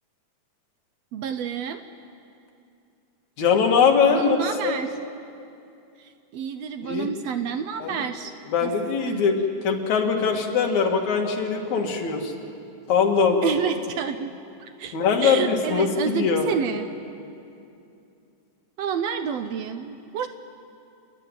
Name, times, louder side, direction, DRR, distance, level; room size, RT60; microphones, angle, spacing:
voice 1, 1.1-1.8 4.1-4.9 6.3-8.3 8.6-8.7 9.1-9.2 13.4-14.3 14.6-15.0 15.2-16.9 18.8-20.3, right 7 dB, 75° right, 9 dB, 1.6 m, -29 dB
voice 2, 3.4-4.4 4.6-4.9 6.8-7.1 7.8-8.0 8.5-12.3 12.9-13.5 14.9-16.5, left 5 dB, 75° left, 2 dB, 3.1 m, -22 dB
28.0 x 11.5 x 9.7 m, 2.6 s
omnidirectional pair, 3.4 m